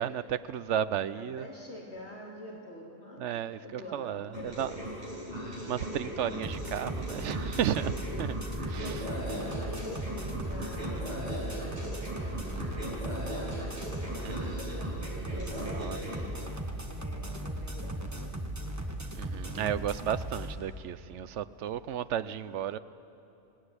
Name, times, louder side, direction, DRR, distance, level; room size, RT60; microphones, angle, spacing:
voice 1, 0.0-1.5 3.2-4.7 5.7-8.4 8.7-9.0 14.2-14.6 15.6-16.0 19.1-22.8, right 10 dB, 70° right, 1.0 m, -33 dB
voice 2, 1.1-3.3 3.6-4.8 5.1-5.3 8.8-13.6 14.2-15.6 15.9-16.6 17.0-18.2, left 1 dB, 60° left, 3.6 m, -46 dB
sound 1, 4.3-16.1, equal, 35° right, 7.6 m, -38 dB
sound 2, 6.4-20.5, right 1 dB, 15° right, 1.4 m, -37 dB
25.0 x 18.0 x 9.8 m
omnidirectional pair, 1.3 m